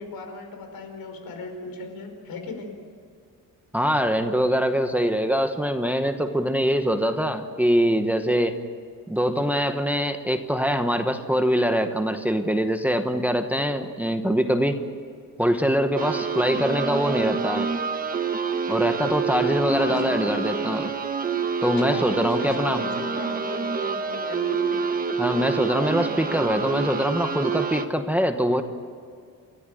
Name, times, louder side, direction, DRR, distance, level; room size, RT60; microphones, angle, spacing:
voice 1, 0.0-2.7 19.7-20.7 21.8-24.8, left 3 dB, 80° left, 5 dB, 4.9 m, -37 dB
voice 2, 3.7-8.6 9.1-14.8 15.4-17.7 18.7-20.9 21.6-22.8 25.2-28.6, equal, 5° right, 6 dB, 1.0 m, -23 dB
sound 1, 16.0-27.9, right 5 dB, 25° right, 1.1 m, -27 dB
30.0 x 14.0 x 9.1 m, 2.2 s
wide cardioid pair, 180°, 35 cm